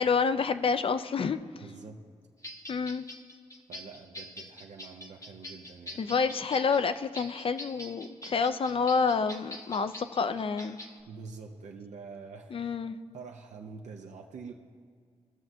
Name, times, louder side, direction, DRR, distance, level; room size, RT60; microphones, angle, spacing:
voice 1, 0.0-1.4 2.7-3.1 6.0-10.8 12.5-13.0, left 5 dB, 50° left, 11 dB, 0.4 m, -28 dB
voice 2, 1.6-2.0 3.7-6.1 11.0-12.6 13.1-14.5, right 5 dB, 80° right, 2 dB, 0.6 m, -46 dB
sound 1, 2.4-11.0, left 1 dB, 25° left, 0.8 m, -45 dB
15.5 x 6.1 x 2.6 m, 2.1 s
cardioid pair, 60°, 12 cm